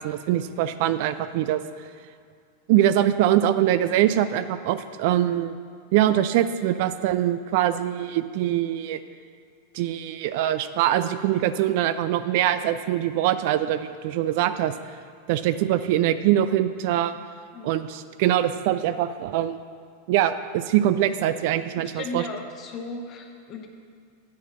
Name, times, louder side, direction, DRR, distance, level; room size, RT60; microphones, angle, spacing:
voice 1, 0.0-1.6 2.7-5.5 5.9-9.0 9.7-14.7 15.3-17.1 17.6-19.6 20.1-22.2, right 12 dB, 50° right, 12 dB, 0.3 m, -23 dB
voice 2, 21.9-23.7, left 3 dB, 35° left, 3 dB, 1.1 m, -35 dB
8.4 x 5.0 x 7.4 m, 2.2 s
figure-of-eight pair, 90°, 0 cm